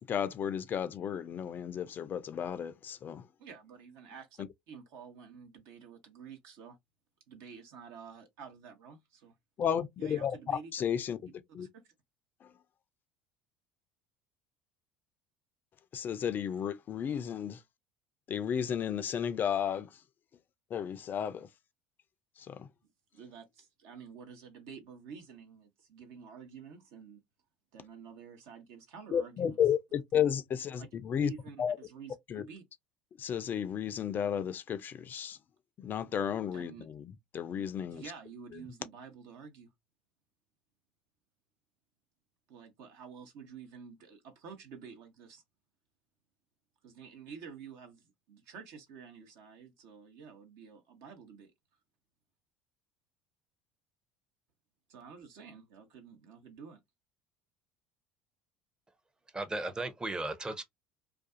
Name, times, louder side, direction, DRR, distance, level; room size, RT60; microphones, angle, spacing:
voice 1, 0.1-3.3 9.6-11.2 11.5-11.7 15.9-17.6 18.3-19.9 20.7-21.5 22.4-22.7 29.1-31.3 31.6-31.8 32.3-32.4 33.2-35.4 35.8-38.0, left 8 dB, 40° left, 0.4 m, -33 dB
voice 2, 3.4-6.8 7.3-9.3 10.0-10.8 11.6-11.9 23.1-27.2 27.7-29.6 31.2-32.6 36.5-36.9 37.6-39.7 42.5-45.4 46.8-51.5 54.9-56.8, right 6 dB, 65° right, 0.8 m, -50 dB
voice 3, 59.3-60.6, right 2 dB, 15° right, 0.6 m, -35 dB
2.5 x 2.3 x 2.5 m
hypercardioid pair, 70°, 5 cm